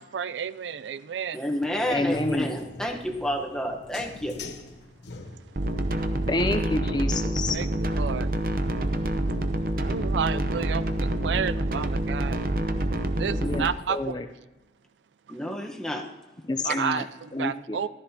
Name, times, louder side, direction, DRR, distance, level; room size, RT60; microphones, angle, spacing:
voice 1, 0.0-1.4 5.6-6.2 7.5-7.7 8.0-8.5 9.0-14.2 15.3-15.4 16.6-17.9, right 7 dB, 85° right, 16 dB, 0.4 m, -32 dB
voice 2, 1.3-4.4 13.3-13.7 15.3-16.1 16.7-16.8, equal, 5° left, 1 dB, 1.0 m, -30 dB
sound 1, 1.7-5.8, left 3 dB, 80° left, 1.1 m, -42 dB
voice 3, 1.9-2.5 6.3-7.6 13.4-14.3 16.4-17.1 17.3-17.8, left 2 dB, 25° left, 7 dB, 0.5 m, -28 dB
sound 2, 5.6-13.7, right 1 dB, 55° right, 0.7 m, -27 dB
14.5 x 13.0 x 2.8 m, 1.1 s
head